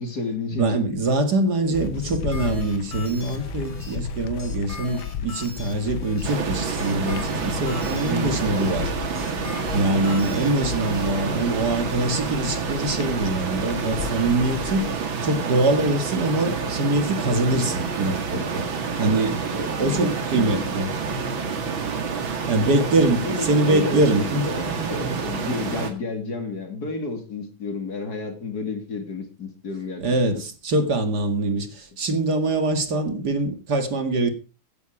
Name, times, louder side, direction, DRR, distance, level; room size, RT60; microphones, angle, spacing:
voice 1, 0.0-0.8 1.6-1.7 2.0-2.1 8.1-8.4 19.8-20.6 22.7-22.8 23.2-30.4, left 3 dB, 50° left, 3.1 m, -31 dB
voice 2, 0.6-8.9 9.7-14.9 15.2-18.6 19.0-21.2 22.5-24.5 30.0-34.3, right 2 dB, 55° right, 2.4 m, -23 dB
sound 1, 1.7-14.9, left 9 dB, 90° left, 1.6 m, -35 dB
sound 2, 1.7-11.1, left 2 dB, 20° left, 2.4 m, -39 dB
sound 3, 6.2-25.9, right 5 dB, 80° right, 2.8 m, -28 dB
15.5 x 10.0 x 4.8 m
omnidirectional pair, 2.1 m